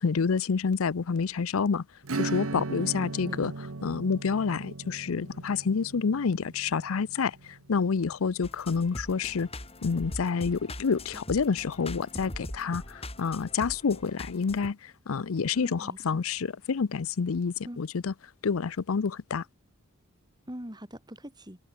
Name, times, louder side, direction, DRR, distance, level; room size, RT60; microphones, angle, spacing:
voice 1, 0.0-1.8 2.2-3.5 3.8-9.5 9.8-18.1 18.4-19.4, left 5 dB, 80° left, 0.6 m, -28 dB
Acoustic guitar / Strum, 2.0-8.3, right 3 dB, 85° right, 1.2 m, -37 dB
voice 2, 2.9-3.4 15.5-16.2 17.6-17.8 20.5-21.6, equal, 20° right, 6.0 m, -43 dB
sound 1, 8.4-14.7, left 1 dB, 30° left, 6.5 m, -41 dB
head